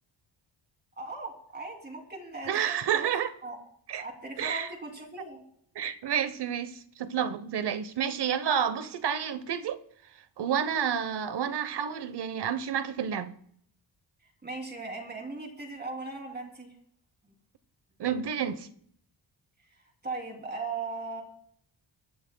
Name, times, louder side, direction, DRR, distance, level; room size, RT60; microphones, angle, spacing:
voice 1, 1.0-3.1 3.4-3.6 4.0-5.4 14.4-16.7 20.0-21.2, right 3 dB, 20° right, 2.9 m, -38 dB
voice 2, 2.4-3.3 3.9-4.0 4.4-4.7 5.7-9.8 10.4-13.3 18.0-18.7, right 8 dB, 60° right, 1.0 m, -30 dB
23.5 x 13.0 x 2.2 m
wide cardioid pair, 135°, 45 cm